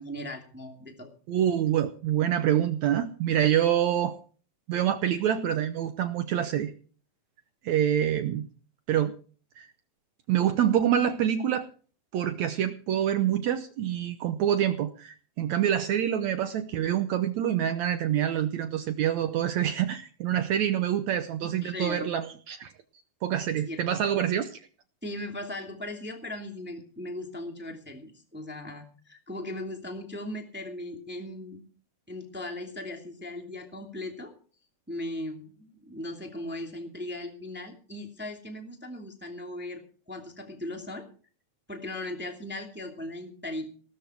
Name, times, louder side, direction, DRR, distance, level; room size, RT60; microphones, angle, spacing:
voice 1, 0.0-1.1 21.4-22.1 23.5-24.0 25.0-31.6 32.1-34.3 34.9-39.8 40.1-41.0 41.7-43.7, left 1 dB, 5° right, 3 dB, 2.0 m, -38 dB
voice 2, 1.3-4.1 4.7-6.7 7.6-8.5 8.9-9.2 9.6-9.7 10.3-11.7 12.1-22.7 23.2-24.6, right 10 dB, 75° right, 9 dB, 1.7 m, -26 dB
17.0 x 13.5 x 4.6 m, 0.41 s
omnidirectional pair, 4.2 m